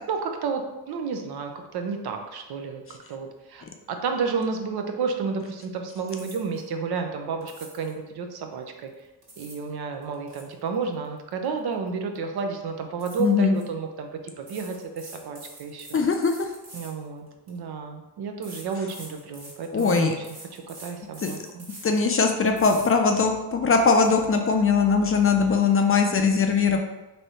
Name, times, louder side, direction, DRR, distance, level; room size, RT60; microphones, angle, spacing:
voice 1, 0.1-2.8 3.1-8.9 9.4-16.0 16.7-20.3 20.5-21.7, right 5 dB, 60° right, 5 dB, 0.7 m, -31 dB
sound 1, 6.1-6.7 7.4-8.0 9.0-9.7 10.0-11.9 12.1-12.4 13.0-13.7 14.4-17.6 18.4-22.0 22.5-22.9 23.4-23.5 23.8-24.1, right 1 dB, 35° right, 1.5 m, -45 dB
voice 2, 13.2-13.5 15.9-16.5 19.7-20.1 21.2-21.3 21.8-26.8, left 5 dB, 30° left, 4 dB, 0.5 m, -21 dB
3.3 x 2.7 x 4.2 m, 1.0 s
supercardioid pair, 65°, 44 cm